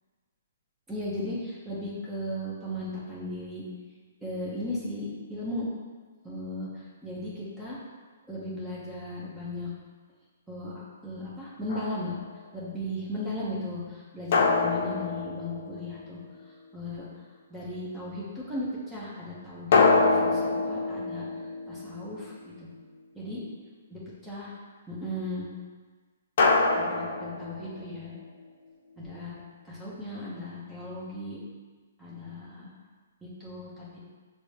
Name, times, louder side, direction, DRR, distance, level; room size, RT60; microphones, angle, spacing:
voice 1, 0.9-3.6 4.2-5.6 6.2-7.8 8.3-9.7 10.5-10.7 11.0-12.1 12.5-16.2 16.7-17.1 17.5-21.3 21.7-22.7 23.1-23.4 23.9-24.5 24.9-25.5 26.7-28.1 29.0-29.3 29.6-31.4 32.0-32.7 33.2-34.0, left 1 dB, 10° right, -8 dB, 1.0 m, -36 dB
sound 1, 11.7-12.3 14.3-16.1 19.7-22.3 26.4-28.0, left 3 dB, 55° left, 0.5 m, -25 dB
5.9 x 2.2 x 3.3 m, 1.4 s
hypercardioid pair, 135°, 0 cm